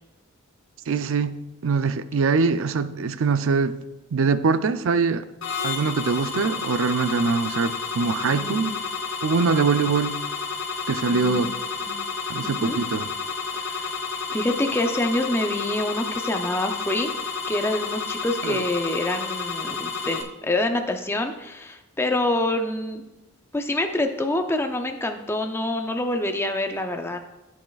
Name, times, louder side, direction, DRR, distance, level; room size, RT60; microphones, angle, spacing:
voice 1, 0.9-1.4 1.6-3.8 4.1-5.3 5.6-8.7 9.2-10.2 10.9-11.5 12.3-13.1 18.4-18.6, right 4 dB, 70° right, 12 dB, 0.4 m, -23 dB
sound 1, 5.4-20.2, left 5 dB, 75° left, 0.9 m, -31 dB
voice 2, 8.3-8.8 11.1-11.5 11.9-12.0 12.4-12.8 13.5-14.0 14.3-17.1 17.5-23.0 23.5-27.2, left 1 dB, 10° left, 5 dB, 0.5 m, -26 dB
13.5 x 6.3 x 2.4 m, 0.98 s
head